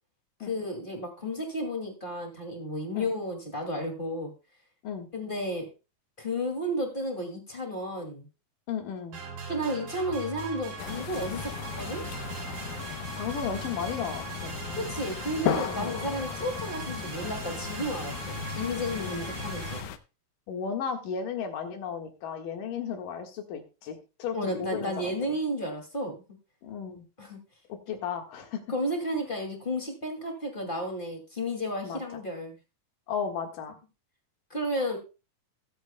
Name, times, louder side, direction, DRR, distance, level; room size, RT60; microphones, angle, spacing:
voice 1, 0.4-4.3 5.1-5.7 6.2-8.3 9.5-12.0 14.7-19.8 24.3-26.1 27.2-27.4 28.7-32.6 34.5-35.0, equal, 20° left, 2 dB, 1.8 m, -32 dB
voice 2, 8.7-9.2 13.2-14.6 15.8-16.0 18.9-19.4 20.5-25.4 26.6-27.1 27.7-28.6 29.2-29.3 31.8-32.2 33.1-33.8, left 7 dB, 70° left, 4 dB, 3.2 m, -35 dB
sound 1, 9.1-19.8, right 3 dB, 80° right, 4.9 m, -39 dB
sound 2, 10.8-20.0, left 10 dB, 85° left, 2.5 m, -36 dB
22.0 x 8.0 x 2.2 m, 0.30 s
omnidirectional pair, 4.0 m